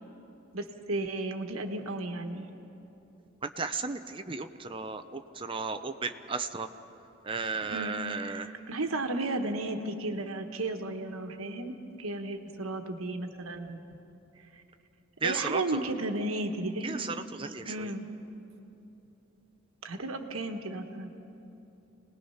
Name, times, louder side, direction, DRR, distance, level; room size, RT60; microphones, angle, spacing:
voice 1, 0.5-2.5 7.6-13.8 15.2-17.0 17.6-18.0 19.8-21.1, right 2 dB, 85° right, 6 dB, 1.3 m, -34 dB
voice 2, 3.4-6.7 7.2-8.5 15.2-15.8 16.8-17.9, right 4 dB, 25° right, 8 dB, 0.7 m, -34 dB
27.0 x 19.5 x 5.7 m, 3.0 s
head